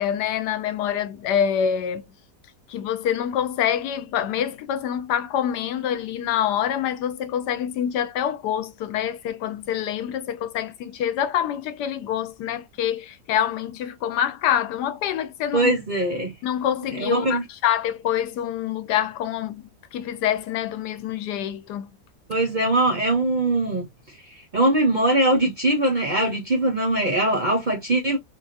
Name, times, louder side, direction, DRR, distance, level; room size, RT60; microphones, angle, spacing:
voice 1, 0.0-2.0 2.7-15.7 16.4-21.9, left 9 dB, 85° left, 1.2 m, -26 dB
voice 2, 15.5-16.3 17.0-17.4 22.3-23.9 24.5-28.2, right 1 dB, 45° right, 0.6 m, -21 dB
3.8 x 2.4 x 2.5 m
omnidirectional pair, 1.7 m